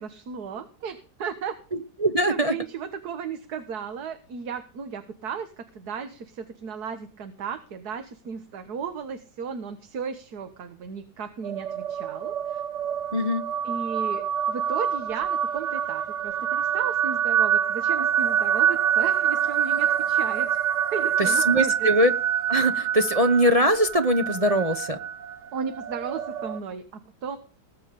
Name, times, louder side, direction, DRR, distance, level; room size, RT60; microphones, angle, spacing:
voice 1, 0.0-1.6 2.3-12.6 13.6-20.6 20.9-21.9 25.5-27.4, right 6 dB, 70° right, 9 dB, 1.7 m, -35 dB
voice 2, 2.0-2.5 13.1-13.4 21.2-22.1 22.5-25.0, equal, 30° right, 7 dB, 0.8 m, -21 dB
sound 1, 11.4-26.6, right 9 dB, 55° right, 1.1 m, -26 dB
20.0 x 8.3 x 5.2 m, 0.36 s
omnidirectional pair, 1.8 m